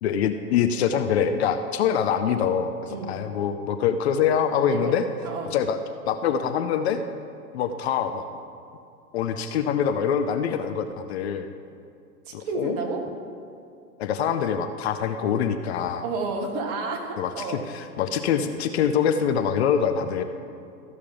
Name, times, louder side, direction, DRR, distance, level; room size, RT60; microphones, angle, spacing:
voice 1, 0.0-5.1 5.5-5.8 6.1-7.0 7.5-8.2 9.1-11.5 12.3-12.8 14.0-16.0 17.2-20.2, left 8 dB, 45° left, 8 dB, 0.6 m, -24 dB
voice 2, 4.7-5.5 12.3-13.0 16.0-17.6, right 4 dB, 40° right, 2 dB, 1.7 m, -31 dB
14.0 x 6.4 x 5.4 m, 2.5 s
hypercardioid pair, 110°, 47 cm